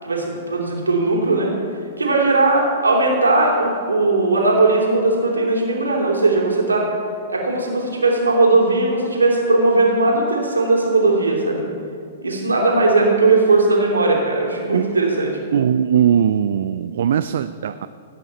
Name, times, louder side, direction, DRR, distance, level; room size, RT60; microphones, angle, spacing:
voice 1, 0.0-1.5 2.0-6.9 7.3-11.6 12.2-15.4, right 2 dB, 85° right, -2 dB, 3.0 m, -18 dB
voice 2, 15.5-17.9, right 9 dB, 60° right, 12 dB, 0.4 m, -19 dB
17.5 x 9.0 x 4.3 m, 2.3 s
figure-of-eight pair, 110°, 0 cm